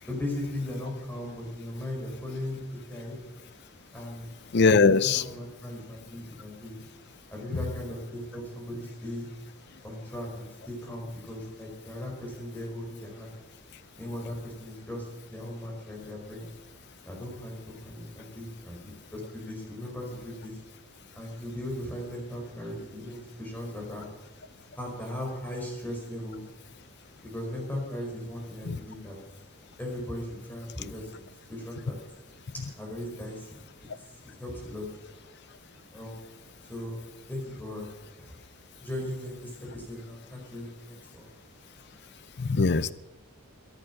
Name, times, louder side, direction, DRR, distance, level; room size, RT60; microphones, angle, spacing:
voice 1, 0.1-3.2 3.9-4.3 4.5-6.8 7.3-9.3 9.8-13.4 14.0-16.5 17.1-20.6 21.1-24.1 24.7-26.4 27.2-29.2 29.8-32.0 32.8-33.6 34.4-34.8 35.9-36.2 36.7-37.0 37.3-37.9 38.2-38.3 38.8-41.3, left 1 dB, 10° left, -1 dB, 4.8 m, -38 dB
voice 2, 4.5-5.2 28.7-28.8 42.4-42.9, left 4 dB, 50° left, 16 dB, 0.6 m, -21 dB
23.5 x 9.1 x 6.0 m, 1.0 s
head